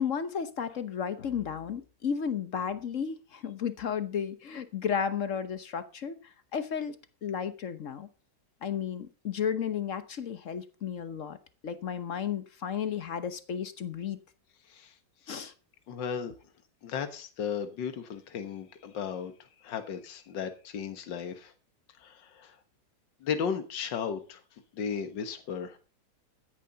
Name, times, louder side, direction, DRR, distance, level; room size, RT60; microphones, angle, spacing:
voice 1, 0.0-6.2 6.5-7.0 7.2-8.1 8.6-11.4 11.6-14.2 15.3-15.5, left 7 dB, 50° left, 12 dB, 1.1 m, -33 dB
voice 2, 15.9-16.4 16.8-19.3 19.6-21.5 22.0-22.6 23.2-24.4 24.7-25.8, left 7 dB, 70° left, 9 dB, 2.0 m, -35 dB
14.5 x 10.5 x 4.0 m, 0.35 s
omnidirectional pair, 2.0 m